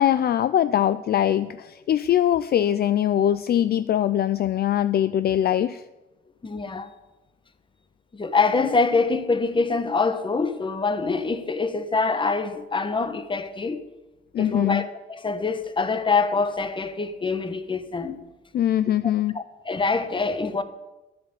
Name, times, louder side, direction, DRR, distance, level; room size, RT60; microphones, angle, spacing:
voice 1, 0.0-5.8 14.3-14.8 18.5-19.4, left 11 dB, 50° left, 0.4 m, -22 dB
voice 2, 6.4-6.9 8.1-13.8 14.4-18.2 19.3-20.6, left 4 dB, 25° left, 1.1 m, -25 dB
10.5 x 7.6 x 8.0 m
cardioid pair, 90°, 20 cm